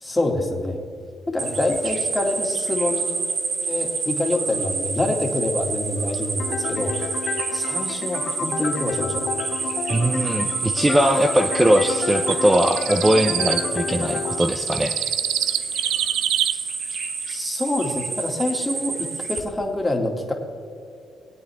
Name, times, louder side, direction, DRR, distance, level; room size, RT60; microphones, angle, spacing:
voice 1, 0.0-0.8 1.3-3.0 3.7-6.9 7.5-9.3 17.3-20.3, left 1 dB, 15° left, 1 dB, 2.2 m, -26 dB
sound 1, 1.4-19.4, right 5 dB, 60° right, 1.6 m, -28 dB
sound 2, 6.4-14.4, left 7 dB, 60° left, 0.7 m, -31 dB
voice 2, 9.9-15.0, right 1 dB, 15° right, 5 dB, 0.7 m, -20 dB
sound 3, 12.3-13.6 14.4-16.5, right 12 dB, 85° right, 0.4 m, -25 dB
21.5 x 8.7 x 3.5 m, 2.5 s
cardioid pair, 90°, 0 cm